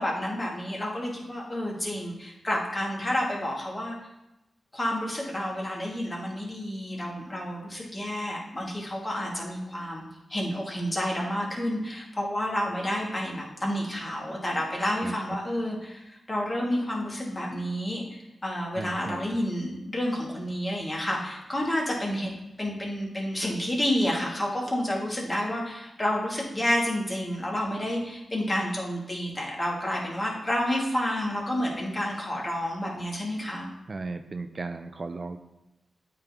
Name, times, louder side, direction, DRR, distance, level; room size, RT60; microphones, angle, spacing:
voice 1, 0.0-4.0 4.7-10.0 10.3-22.3 22.6-33.7, equal, 30° left, -2 dB, 2.0 m, -30 dB
voice 2, 18.8-19.3 33.9-35.4, right 3 dB, 50° right, 8 dB, 0.4 m, -36 dB
8.8 x 3.8 x 2.9 m, 0.92 s
supercardioid pair, 40°, 0 cm